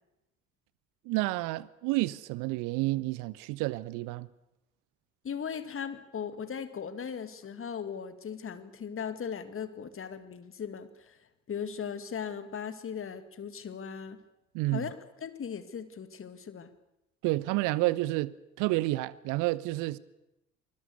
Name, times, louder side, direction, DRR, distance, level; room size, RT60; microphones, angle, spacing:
voice 1, 1.0-4.3 14.5-14.9 17.2-20.0, right 19 dB, 55° right, 0.8 m, -30 dB
voice 2, 5.2-11.2 11.5-14.2 14.7-15.0 15.2-16.7, left 7 dB, 35° left, 2.1 m, -38 dB
24.5 x 20.5 x 6.9 m
figure-of-eight pair, 50°, 37 cm